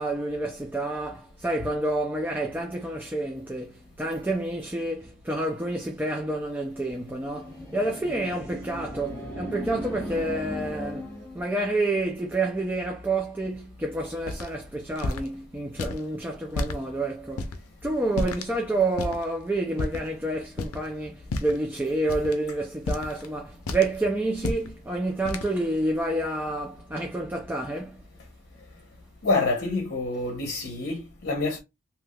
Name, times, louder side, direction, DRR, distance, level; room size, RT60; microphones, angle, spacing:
voice 1, 0.0-17.5 17.8-28.0, right 2 dB, 10° right, 0.4 m, -29 dB
sound 1, 6.8-11.5, equal, 10° left, 1.0 m, -37 dB
sound 2, 14.3-14.5 15.0-15.3 15.8-16.0 16.5-16.8 17.4-17.6 18.1-18.5 19.0-19.2 19.8-20.1 20.5-20.9 21.2-21.6 22.1-22.3 22.9-23.3 23.7-24.0 24.3-24.7 25.3-25.5, left 2 dB, 80° left, 0.6 m, -31 dB
voice 2, 29.2-31.6, left 3 dB, 50° left, 0.8 m, -27 dB
3.2 x 2.9 x 2.3 m
head